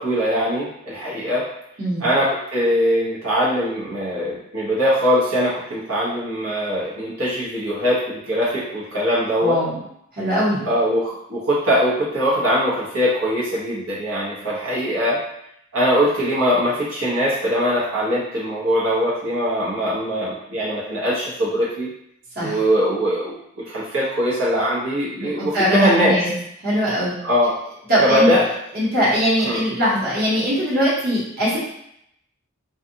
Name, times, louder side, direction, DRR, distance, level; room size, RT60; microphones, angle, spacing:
voice 1, 0.0-1.4 2.0-9.6 10.6-15.2 15.7-21.9 22.4-26.2 27.2-27.5 28.0-28.4 29.4-29.6, equal, 80° right, -8 dB, 0.8 m, -21 dB
voice 2, 1.8-2.1 9.4-9.7 10.2-10.7 22.4-22.6 25.2-26.3 26.6-27.1 27.9-28.3 28.7-31.6, equal, 45° right, -8 dB, 1.0 m, -21 dB
2.6 x 2.3 x 2.7 m, 0.75 s
head